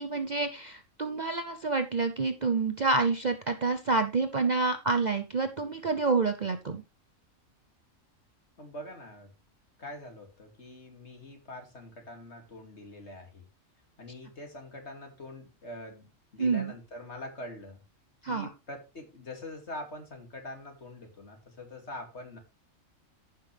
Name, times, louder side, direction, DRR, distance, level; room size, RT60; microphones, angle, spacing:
voice 1, 0.0-6.8 16.4-16.7 18.2-18.5, right 3 dB, 40° right, 7 dB, 0.7 m, -28 dB
voice 2, 8.6-9.3 9.8-13.5 14.0-17.8 18.3-22.4, left 1 dB, 55° left, 3 dB, 2.8 m, -44 dB
15.0 x 5.8 x 3.4 m, 0.27 s
omnidirectional pair, 1.4 m